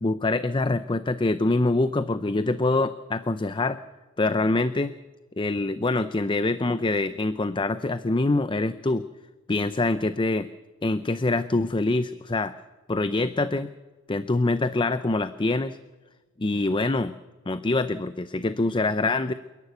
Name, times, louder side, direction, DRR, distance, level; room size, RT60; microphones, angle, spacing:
voice 1, 0.0-3.8 4.2-4.9 5.4-9.0 9.5-10.5 10.8-12.5 12.9-13.7 14.1-15.8 16.4-17.1 17.5-19.3, left 2 dB, 25° left, 12 dB, 0.6 m, -25 dB
28.5 x 11.5 x 8.2 m, 1.2 s
head